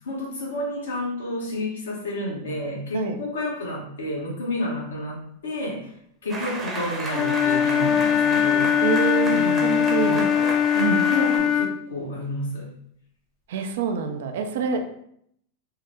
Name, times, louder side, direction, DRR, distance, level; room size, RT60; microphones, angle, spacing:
voice 1, 0.0-5.9 6.2-8.7 9.2-10.3 10.7-12.7, left 1 dB, 85° left, -3 dB, 1.1 m, -30 dB
sound 1, 6.3-11.4, right 2 dB, 25° right, 0.8 m, -33 dB
Wind instrument woodwind instrument, 7.1-11.7, left 8 dB, 30° left, 0.5 m, -21 dB
voice 2, 8.8-10.6 13.5-14.9, right 5 dB, 70° right, 6 dB, 0.4 m, -27 dB
3.5 x 2.1 x 3.0 m, 0.71 s
hypercardioid pair, 105°, 0 cm